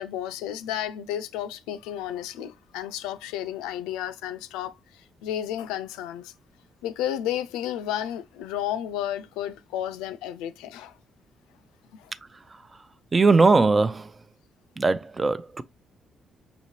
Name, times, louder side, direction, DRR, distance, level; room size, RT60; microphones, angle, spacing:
voice 1, 0.0-6.3 6.8-11.0 11.9-12.1, left 11 dB, 85° left, 0.3 m, -32 dB
voice 2, 13.1-14.1 14.8-15.6, right 3 dB, 35° right, 0.4 m, -20 dB
5.4 x 2.9 x 2.7 m
hypercardioid pair, 50°, 0 cm